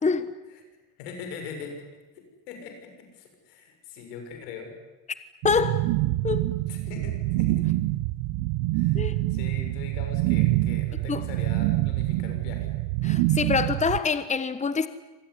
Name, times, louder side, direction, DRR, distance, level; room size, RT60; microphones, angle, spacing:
voice 1, 1.0-1.9 2.1-4.8 6.7-7.7 8.7-12.7, left 5 dB, 90° left, 7.2 m, -41 dB
voice 2, 5.4-5.9 6.2-6.5 8.9-9.2 11.1-11.2 13.0-14.9, left 5 dB, 15° left, 1.3 m, -25 dB
sound 1, 5.4-14.0, right 18 dB, 75° right, 1.1 m, -26 dB
26.0 x 19.0 x 9.8 m
supercardioid pair, 105°, 45 cm